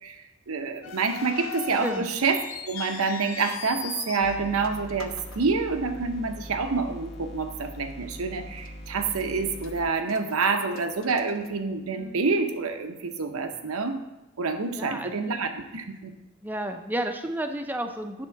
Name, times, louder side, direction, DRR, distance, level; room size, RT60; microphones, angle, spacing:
voice 1, 0.0-14.0 14.4-16.1, right 4 dB, 90° right, 7 dB, 0.8 m, -27 dB
sound 1, 0.8-6.1 6.4-6.5 7.3-7.5 7.9-8.0 8.6-9.2 9.6-12.1, left 8 dB, 75° left, 0.6 m, -40 dB
sound 2, 4.2-9.9, equal, 50° left, 1.0 m, -42 dB
voice 2, 14.7-15.2 16.4-18.3, right 1 dB, 10° right, 6 dB, 0.5 m, -32 dB
10.5 x 3.6 x 5.8 m, 1.0 s
head